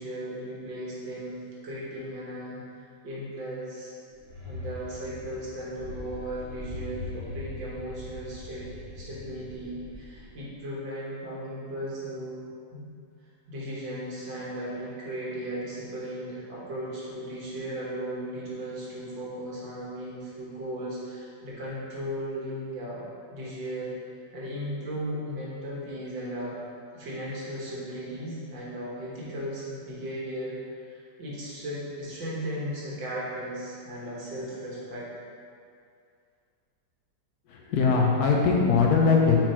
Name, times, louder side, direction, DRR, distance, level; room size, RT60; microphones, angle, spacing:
voice 1, 0.0-2.6 3.0-3.9 4.5-8.7 9.0-12.4 12.7-12.9 13.5-23.0 23.3-23.9 24.3-26.6 26.9-35.1, right 1 dB, 80° right, -6 dB, 2.2 m, -36 dB
sound 1, 4.2-10.5, left 2 dB, 55° right, 1.5 m, -41 dB
voice 2, 37.5-39.4, left 5 dB, 65° left, -1 dB, 1.2 m, -21 dB
6.1 x 4.3 x 4.5 m, 2.3 s
omnidirectional pair, 2.0 m